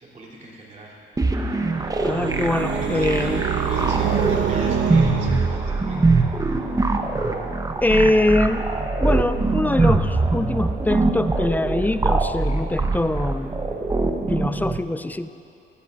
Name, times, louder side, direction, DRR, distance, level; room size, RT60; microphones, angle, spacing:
voice 1, 0.0-0.9 2.7-6.2, right 2 dB, 35° right, -5 dB, 2.8 m, -39 dB
sound 1, 1.2-14.8, right 3 dB, 15° right, 0.7 m, -23 dB
sound 2, 1.4-6.1, right 7 dB, 65° right, 0.8 m, -26 dB
voice 2, 2.0-3.4 7.8-13.6 14.3-15.3, left 1 dB, 10° left, 11 dB, 0.3 m, -23 dB
17.0 x 12.0 x 2.4 m, 2.7 s
cardioid pair, 90°, 20 cm